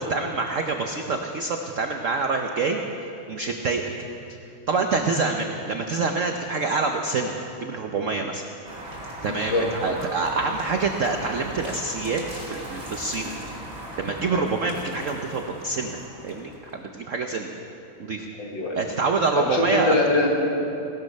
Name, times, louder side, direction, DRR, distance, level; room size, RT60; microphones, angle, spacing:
voice 1, 0.1-2.8 3.3-3.9 4.7-8.4 9.2-13.3 14.0-16.0 16.2-17.5 18.0-18.3 18.7-20.0, right 4 dB, 80° right, 4 dB, 0.7 m, -26 dB
sound 1, 8.7-16.8, right 1 dB, 40° right, 3.3 m, -38 dB
voice 2, 9.3-9.9 13.2-13.4 14.3-14.5 18.4-18.8 19.4-20.3, left 2 dB, 60° left, 0 dB, 2.4 m, -24 dB
17.5 x 13.0 x 5.3 m, 2.8 s
omnidirectional pair, 2.4 m